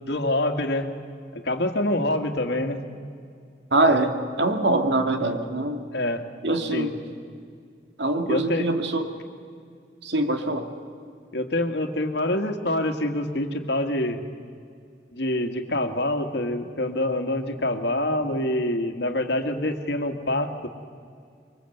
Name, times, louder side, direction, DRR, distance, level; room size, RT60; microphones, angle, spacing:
voice 1, 0.1-0.9 1.3-2.8 5.9-6.3 6.7-6.9 8.3-8.7 11.3-14.2 15.1-20.7, left 1 dB, 75° left, 6 dB, 2.0 m, -26 dB
voice 2, 3.7-5.8 6.4-7.0 8.0-9.1 10.0-10.7, right 2 dB, 80° right, 6 dB, 2.1 m, -23 dB
25.0 x 23.5 x 8.0 m, 2.2 s
head